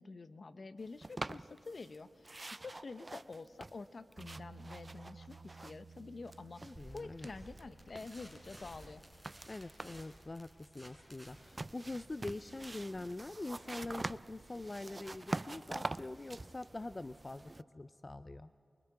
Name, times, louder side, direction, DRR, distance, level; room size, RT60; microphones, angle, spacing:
voice 1, 0.0-9.0, left 3 dB, 60° left, 12 dB, 0.8 m, -48 dB
sound 1, 1.0-2.0 2.2-6.0 6.2-7.6 8.0-10.2 11.3-17.6, right 2 dB, 35° right, 0.4 m, -45 dB
sound 2, 4.2-13.1, right 4 dB, 65° right, 0.7 m, -58 dB
voice 2, 6.6-7.3 9.5-17.4 17.7-18.5, left 2 dB, 35° left, 13 dB, 0.4 m, -44 dB
sound 3, 6.7-15.9, equal, ahead, 5.6 m, -57 dB
23.5 x 23.5 x 4.8 m, 2.7 s
cardioid pair, 45°, 0 cm